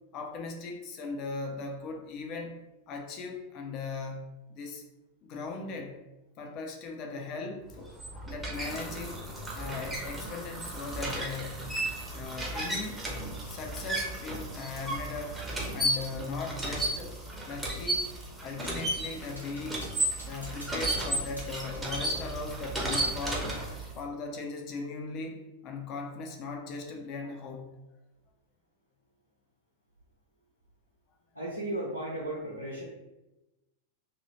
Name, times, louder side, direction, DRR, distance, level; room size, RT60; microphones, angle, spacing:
voice 1, 0.1-2.6 2.9-4.8 5.2-6.0 6.4-7.9 8.3-9.2 9.5-11.7 12.1-13.1 13.5-15.4 15.7-17.2 17.4-18.1 18.4-19.9 20.2-23.6 24.0-27.7, left 4 dB, 40° left, 2 dB, 0.6 m, -38 dB
sound 1, 7.7-24.0, right 1 dB, 10° right, 0.7 m, -34 dB
sound 2, 18.6-18.9 19.4-21.9, equal, 90° left, 1.0 m, -49 dB
voice 2, 31.3-32.8, right 1 dB, 90° right, -7 dB, 0.8 m, -35 dB
2.7 x 2.7 x 3.0 m, 0.99 s
figure-of-eight pair, 90°, 0 cm